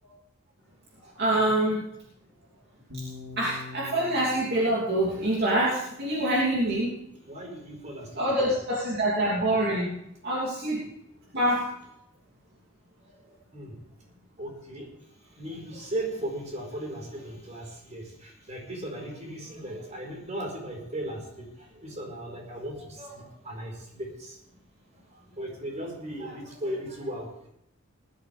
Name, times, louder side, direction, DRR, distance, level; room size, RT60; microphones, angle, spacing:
voice 1, 1.2-1.8 3.4-6.9 8.2-9.9 10.2-10.9 11.3-11.7, right 1 dB, 55° right, -5 dB, 3.0 m, -25 dB
sound 1, 2.9-7.0, left 3 dB, 85° right, 3.4 m, -45 dB
voice 2, 7.2-8.5 13.0-13.8 14.4-14.9 15.4-24.4 25.1-27.5, right 1 dB, 35° right, 0 dB, 4.7 m, -37 dB
19.5 x 12.5 x 3.5 m, 0.76 s
head